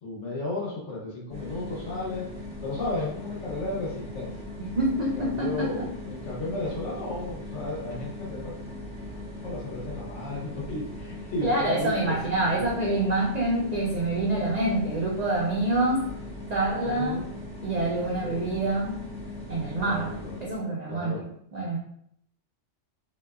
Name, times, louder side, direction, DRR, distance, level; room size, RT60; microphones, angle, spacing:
voice 1, 0.0-2.3 2.6-4.3 5.0-8.5 9.4-12.1 12.5-12.6 16.9-17.3 18.2-18.5 19.8-20.4 20.9-21.2, left 2 dB, 75° left, -4 dB, 1.2 m, -34 dB
sound 1, 1.3-20.6, left 1 dB, 5° left, 0.7 m, -39 dB
voice 2, 4.8-5.9 11.4-16.1 16.5-17.2 17.6-19.1 19.5-21.8, right 2 dB, 70° right, -3 dB, 0.4 m, -27 dB
2.7 x 2.2 x 2.2 m, 0.68 s
omnidirectional pair, 1.3 m